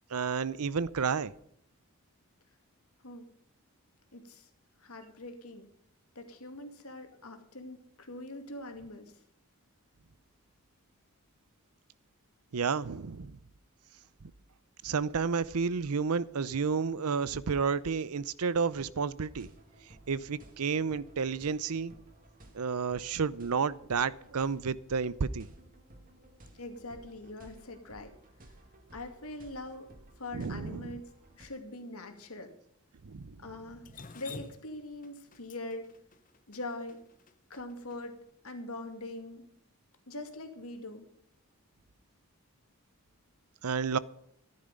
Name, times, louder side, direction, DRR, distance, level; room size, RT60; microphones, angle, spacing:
voice 1, 0.1-1.3 12.5-13.4 14.8-19.5 20.1-21.9 22.5-25.5 30.3-31.0 33.0-33.4 43.6-44.0, right 5 dB, 85° right, 0.6 m, -31 dB
voice 2, 4.1-4.5 4.8-5.7 6.2-9.1 26.6-28.1 28.9-29.9 30.2-31.0 31.3-32.5 33.4-33.9 34.1-35.8 36.5-37.0 37.5-38.1 38.4-39.4 40.1-41.1, left 2 dB, 80° left, 2.3 m, -42 dB
sound 1, 19.3-31.5, right 1 dB, 40° right, 2.1 m, -56 dB
Drip, 33.8-38.0, left 4 dB, 35° left, 0.8 m, -49 dB
14.0 x 10.5 x 5.4 m
head